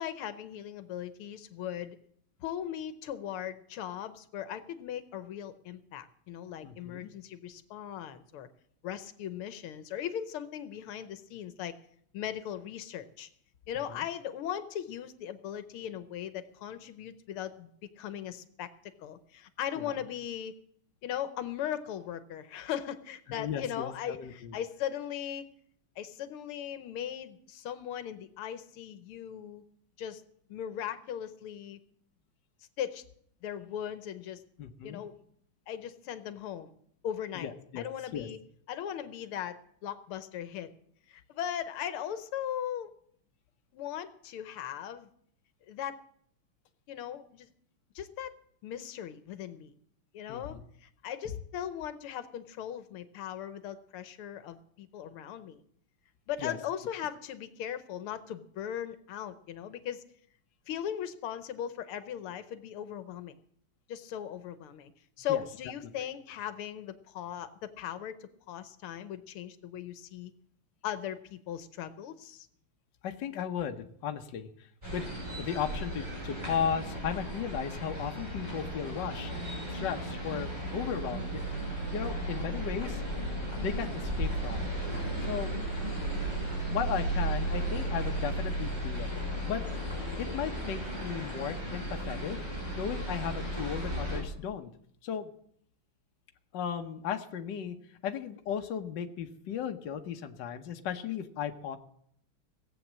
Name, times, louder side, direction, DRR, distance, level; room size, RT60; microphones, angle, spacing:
voice 1, 0.0-2.0 2.4-8.5 8.8-11.8 12.1-13.3 13.7-17.7 18.0-18.7 19.0-20.5 21.0-25.5 26.0-29.6 30.0-30.2 30.5-31.8 32.8-33.0 33.4-34.4 34.8-35.1 35.7-36.7 37.0-38.4 38.7-40.7 41.1-42.9 43.7-45.1 45.7-46.0 46.9-47.5 48.0-48.3 48.6-49.7 50.1-55.6 56.3-60.1 60.7-63.3 63.9-64.9 65.2-70.3 70.8-72.5, left 10 dB, 85° left, 12 dB, 1.8 m, -38 dB
voice 2, 6.6-7.1 13.9-14.0 19.8-19.9 23.3-24.6 34.6-35.0 37.3-37.8 38.1-38.3 50.3-50.6 56.4-56.6 65.3-65.4 73.0-75.0 75.4-81.4 81.9-83.0 83.6-84.6 85.3-85.5 86.7-89.9 90.2-92.4 92.7-94.7 95.0-95.3 96.5-97.8 98.0-101.8, left 8 dB, 60° left, 6 dB, 1.5 m, -36 dB
sound 1, 74.8-94.2, right 1 dB, 10° right, 5.4 m, -35 dB
17.5 x 8.1 x 7.4 m, 0.66 s
omnidirectional pair, 2.3 m